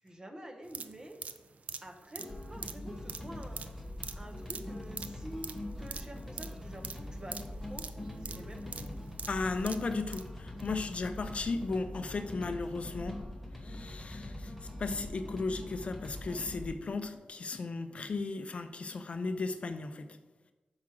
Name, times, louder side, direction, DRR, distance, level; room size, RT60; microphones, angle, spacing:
voice 1, 0.0-1.2 1.8-3.8 4.2-8.9, right 1 dB, 25° right, 4 dB, 0.8 m, -48 dB
sound 1, 0.6-10.3 10.6-10.7, right 5 dB, 50° right, 0.4 m, -44 dB
sound 2, 2.2-16.7, left 1 dB, ahead, 1.1 m, -43 dB
voice 2, 9.3-13.2 13.5-20.1, left 3 dB, 45° left, 9 dB, 0.4 m, -35 dB
5.9 x 4.8 x 6.0 m, 1.2 s
wide cardioid pair, 165°, 3 cm